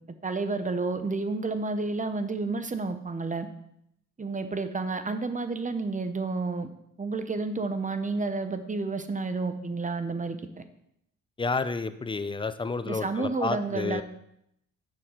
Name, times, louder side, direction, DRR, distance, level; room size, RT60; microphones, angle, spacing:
voice 1, 0.2-3.5 4.2-6.7 7.0-10.4 12.9-14.0, right 3 dB, 20° right, 10 dB, 0.7 m, -30 dB
voice 2, 11.4-14.0, left 4 dB, 15° left, 12 dB, 0.4 m, -30 dB
7.0 x 5.9 x 3.7 m, 0.77 s
cardioid pair, 80°, 36 cm